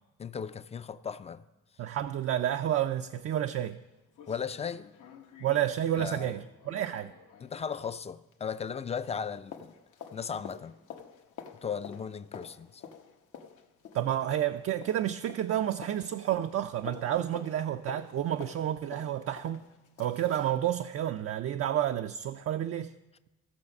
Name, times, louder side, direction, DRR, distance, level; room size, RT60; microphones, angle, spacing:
voice 1, 0.2-1.5 4.3-4.9 6.0-6.3 7.4-9.7 10.1-10.7 11.6-12.8, left 7 dB, 20° left, 0.4 m, -36 dB
voice 2, 1.8-3.8 5.4-7.1 13.9-19.6 20.0-22.9, right 11 dB, 50° right, 0.4 m, -30 dB
concrete female heels, 3.3-3.4 3.7-3.8 4.1-8.7 9.0-20.6 20.9-21.0, left 7 dB, 80° left, 1.1 m, -49 dB
16.0 x 6.4 x 5.3 m
cardioid pair, 90°, 30 cm